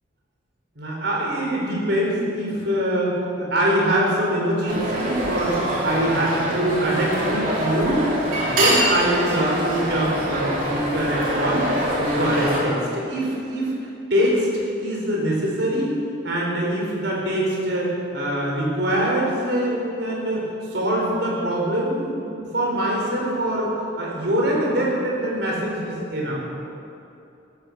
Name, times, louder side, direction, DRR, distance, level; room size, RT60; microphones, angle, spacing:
voice 1, 0.8-8.1 8.4-11.7 12.0-13.7 14.1-15.9 16.2-23.7 24.0-26.3, right 1 dB, 60° right, -3 dB, 4.4 m, -23 dB
sound 1, 4.7-12.6, right 1 dB, 45° right, 3.4 m, -24 dB
15.5 x 12.5 x 6.6 m, 2.8 s
head